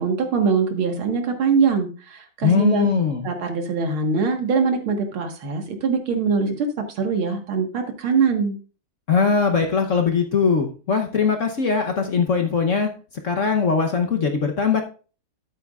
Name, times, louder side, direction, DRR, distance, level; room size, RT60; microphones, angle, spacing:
voice 1, 0.0-2.9 3.2-8.6, right 5 dB, 85° right, 4 dB, 2.4 m, -22 dB
voice 2, 2.4-3.3 9.1-12.9 13.2-14.8, left 5 dB, 50° left, 4 dB, 1.0 m, -21 dB
13.0 x 8.2 x 2.4 m, 0.37 s
omnidirectional pair, 2.2 m